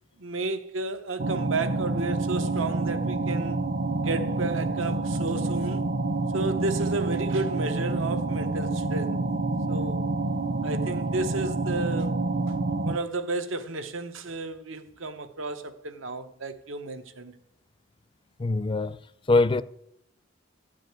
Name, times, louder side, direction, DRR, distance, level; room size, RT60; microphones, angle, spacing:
voice 1, 0.2-3.6 4.0-5.8 6.3-9.2 9.7-10.0 10.6-12.2 12.5-12.6 12.8-17.4, right 2 dB, 85° right, 0.9 m, -32 dB
sound 1, 1.2-13.0, right 2 dB, 45° right, 0.5 m, -28 dB
voice 2, 18.4-19.0 19.3-19.6, left 3 dB, 25° left, 0.4 m, -22 dB
13.5 x 5.1 x 9.2 m
head